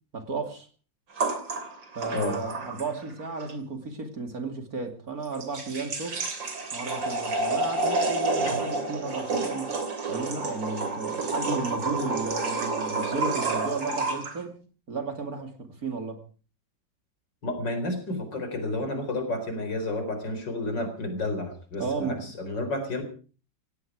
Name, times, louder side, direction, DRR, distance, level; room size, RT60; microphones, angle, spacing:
voice 1, 0.1-0.7 1.9-6.2 6.7-9.8 10.1-14.5 14.9-16.2 21.8-22.3, right 3 dB, 50° right, 6 dB, 3.0 m, -33 dB
sound 1, 1.2-3.1 3.4-3.5 5.3-14.4, right 3 dB, 80° right, 3.6 m, -29 dB
voice 2, 17.4-23.0, left 2 dB, 70° left, 8 dB, 4.9 m, -31 dB
17.5 x 17.0 x 4.8 m, 0.39 s
omnidirectional pair, 2.0 m